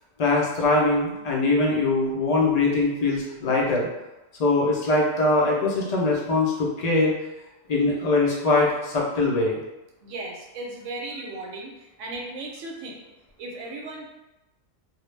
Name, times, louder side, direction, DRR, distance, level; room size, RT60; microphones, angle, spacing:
voice 1, 0.2-3.9 4.4-7.1 7.7-9.6, left 2 dB, 65° left, -4 dB, 0.4 m, -22 dB
voice 2, 10.0-13.0 13.4-14.1, right 2 dB, 75° right, -1 dB, 0.9 m, -36 dB
2.3 x 2.0 x 3.1 m, 0.98 s
omnidirectional pair, 1.3 m